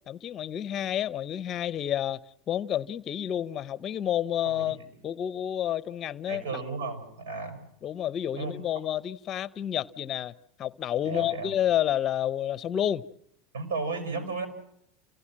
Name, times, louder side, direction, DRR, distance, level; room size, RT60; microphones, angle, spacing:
voice 1, 0.1-6.6 7.8-10.3 10.6-13.0, left 11 dB, 35° left, 0.8 m, -30 dB
voice 2, 4.4-4.8 6.3-7.6 8.3-8.5 11.0-11.5 13.5-14.5, right 4 dB, 85° right, 6.3 m, -34 dB
28.0 x 16.0 x 7.6 m
supercardioid pair, 125°, 0 cm